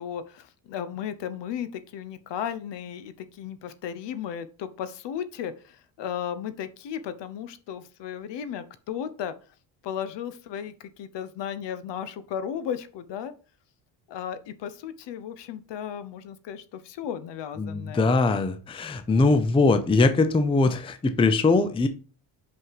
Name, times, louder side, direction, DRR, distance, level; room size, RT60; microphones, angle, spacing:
voice 1, 0.0-9.3 9.8-13.3 14.1-18.1, left 9 dB, 60° left, 13 dB, 1.0 m, -35 dB
voice 2, 17.6-21.9, left 3 dB, 10° left, 9 dB, 0.5 m, -21 dB
5.6 x 5.6 x 5.8 m, 0.37 s
cardioid pair, 145°, 47 cm